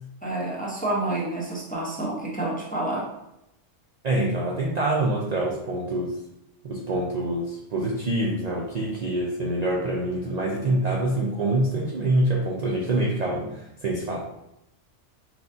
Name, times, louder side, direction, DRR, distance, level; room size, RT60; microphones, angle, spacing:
voice 1, 0.2-3.1, right 2 dB, 10° left, -4 dB, 0.6 m, -28 dB
voice 2, 4.0-6.2 6.6-14.2, right 1 dB, 50° right, -3 dB, 0.5 m, -25 dB
5.8 x 2.4 x 2.7 m, 0.86 s
omnidirectional pair, 1.3 m